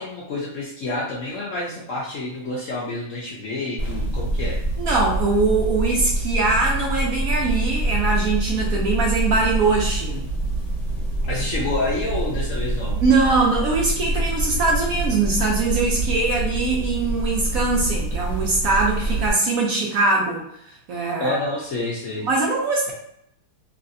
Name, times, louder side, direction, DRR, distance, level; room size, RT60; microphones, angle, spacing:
voice 1, 0.0-4.6 11.2-13.0 21.2-22.3, left 2 dB, 80° left, -4 dB, 0.7 m, -28 dB
sound 1, 3.8-19.3, right 1 dB, 25° left, 0.9 m, -26 dB
voice 2, 4.8-10.2 13.0-20.4 20.9-21.4 22.2-22.9, right 3 dB, 70° right, -2 dB, 0.8 m, -22 dB
3.1 x 2.7 x 2.6 m, 0.76 s
omnidirectional pair, 2.1 m